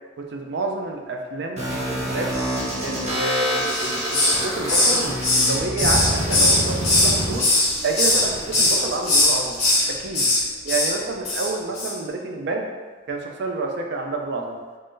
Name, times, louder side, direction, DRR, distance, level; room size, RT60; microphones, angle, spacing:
voice 1, 0.2-2.3 2.8-7.5 7.8-9.6 10.0-10.3 10.6-12.7 13.1-14.6, right 2 dB, 60° right, 2 dB, 0.4 m, -28 dB
sound 1, 1.6-9.6, equal, 35° right, 0.9 m, -27 dB
Hiss, 3.7-4.4 4.7-7.1 7.4-8.2 8.5-8.8 9.1-9.8 10.1-10.4 10.7-10.9 11.2-11.5 11.7-11.9, left 2 dB, 35° left, 1.3 m, -19 dB
3.7 x 3.2 x 2.6 m, 1.4 s
head